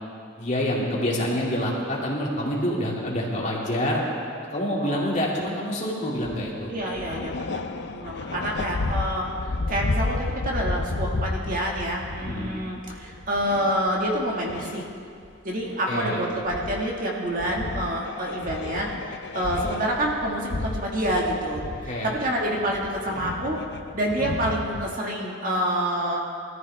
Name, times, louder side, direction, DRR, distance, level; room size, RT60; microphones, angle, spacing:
voice 1, 0.4-4.0 4.5-6.7 12.2-12.5 15.9-16.2 21.9-22.1, left 1 dB, 35° left, -4 dB, 2.8 m, -27 dB
voice 2, 4.8-5.2 6.7-9.3 9.7-14.8 15.4-23.6 23.9-26.2, right 1 dB, 40° right, -2 dB, 2.1 m, -27 dB
sound 1, 6.2-6.5 6.8-15.3 15.6-16.0 16.5-17.0 17.4-24.9, left 3 dB, 55° left, 0.6 m, -32 dB
22.0 x 14.0 x 3.6 m, 2.4 s
head